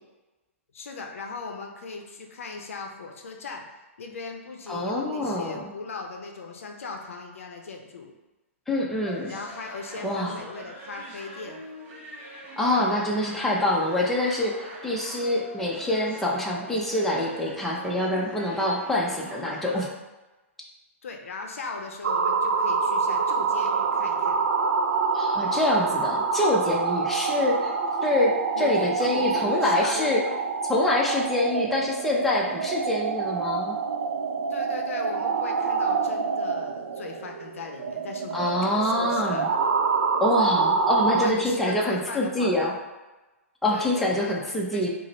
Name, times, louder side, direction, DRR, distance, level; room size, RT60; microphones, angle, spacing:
voice 1, 0.7-3.6 4.0-8.1 9.3-11.6 21.0-24.4 28.6-30.6 34.5-39.5 41.1-42.6 43.7-44.9, left 4 dB, 70° left, 3 dB, 0.6 m, -38 dB
voice 2, 4.7-5.7 8.7-9.3 10.0-10.4 12.6-19.9 25.1-27.8 28.0-30.2 30.7-33.8 38.3-39.5 40.2-42.7 43.6-44.9, left 1 dB, 5° left, -4 dB, 0.6 m, -25 dB
sound 1, 9.0-19.9, right 1 dB, 30° right, 0.9 m, -43 dB
sound 2, 22.0-41.3, right 5 dB, 70° right, 0.4 m, -26 dB
4.8 x 2.0 x 2.9 m, 1.1 s
hypercardioid pair, 120°, 8 cm